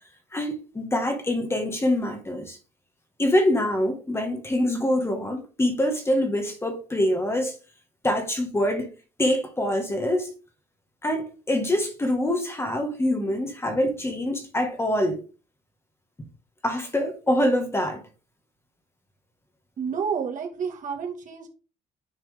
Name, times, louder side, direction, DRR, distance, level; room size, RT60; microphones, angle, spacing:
voice 1, 0.3-2.6 3.2-7.6 8.0-8.9 9.2-10.3 11.0-15.2 16.6-18.1, left 1 dB, 15° left, 1.8 m, -25 dB
voice 2, 19.8-21.5, right 6 dB, 50° right, 2.2 m, -30 dB
9.3 x 4.6 x 3.7 m
cardioid pair, 110°, 17 cm